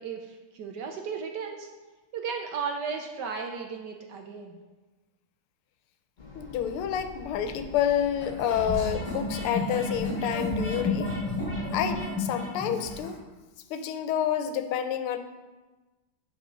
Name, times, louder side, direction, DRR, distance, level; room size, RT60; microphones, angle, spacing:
voice 1, 0.0-1.7 2.1-4.6, right 5 dB, 70° right, 3 dB, 1.1 m, -35 dB
sound 1, 6.2-12.0, left 3 dB, 30° left, 0.9 m, -46 dB
voice 2, 6.3-11.1 11.7-13.2 13.7-15.2, left 9 dB, 90° left, 9 dB, 1.6 m, -29 dB
sound 2, 8.2-13.1, left 2 dB, 15° left, 2.2 m, -31 dB
11.0 x 5.1 x 3.7 m, 1.2 s
omnidirectional pair, 2.3 m